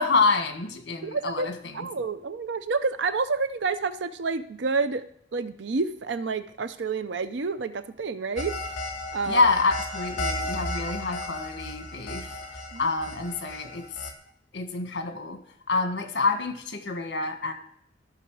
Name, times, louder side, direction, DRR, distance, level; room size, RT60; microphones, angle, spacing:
voice 1, 0.0-1.9 9.2-12.4 12.8-14.1 14.5-15.4 15.7-17.5, left 3 dB, 65° left, 6 dB, 1.5 m, -27 dB
voice 2, 1.0-1.5 1.7-5.0 5.3-8.5 9.1-9.5 12.7-12.9, right 4 dB, 70° right, 12 dB, 0.6 m, -29 dB
sound 1, 8.4-14.1, left 2 dB, 45° left, 2.3 m, -34 dB
13.0 x 6.1 x 4.7 m, 0.67 s
head